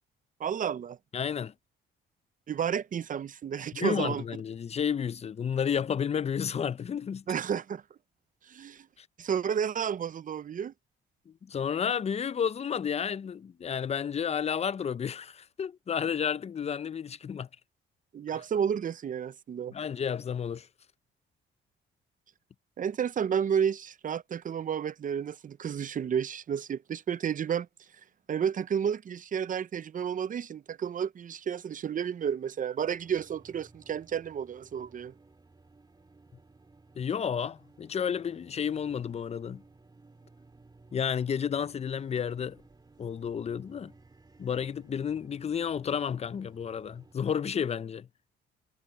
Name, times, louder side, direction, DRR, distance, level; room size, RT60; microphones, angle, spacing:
voice 1, 0.4-1.0 2.5-4.2 7.3-7.8 8.5-8.9 9.2-10.7 18.1-19.7 22.8-27.7 28.3-35.1, right 8 dB, 40° right, 0.6 m, -31 dB
voice 2, 1.1-1.5 3.7-7.2 9.0-9.1 11.3-17.5 19.7-20.7 37.0-39.6 40.9-42.6 43.0-43.9 44.4-48.1, left 7 dB, 30° left, 0.5 m, -31 dB
sound 1, 32.8-47.2, right 3 dB, 20° right, 2.2 m, -58 dB
cardioid pair, 90°, 20 cm